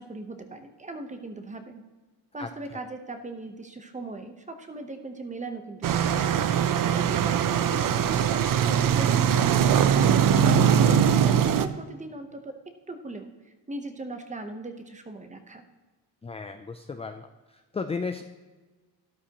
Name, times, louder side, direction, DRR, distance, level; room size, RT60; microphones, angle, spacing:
voice 1, 0.0-1.8 2.3-10.2 10.8-15.6, right 2 dB, 15° right, 6 dB, 0.9 m, -39 dB
voice 2, 2.4-2.8 16.2-17.3 17.7-18.2, left 4 dB, 15° left, 7 dB, 0.3 m, -34 dB
sound 1, 5.8-11.7, right 8 dB, 50° right, 0.6 m, -21 dB
12.5 x 11.5 x 3.0 m, 1.3 s
cardioid pair, 130°, 42 cm